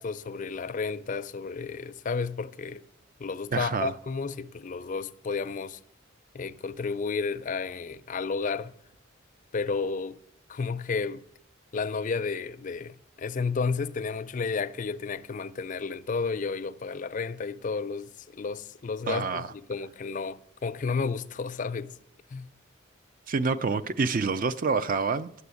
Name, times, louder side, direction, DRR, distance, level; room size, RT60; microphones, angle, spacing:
voice 1, 0.0-2.8 3.2-5.8 6.3-8.7 9.5-10.2 10.5-11.2 11.7-21.9 22.3-22.5, left 4 dB, 40° left, 0.4 m, -32 dB
voice 2, 3.5-3.9 19.1-19.5 23.3-25.3, right 4 dB, 45° right, 0.4 m, -27 dB
11.0 x 7.0 x 8.2 m
head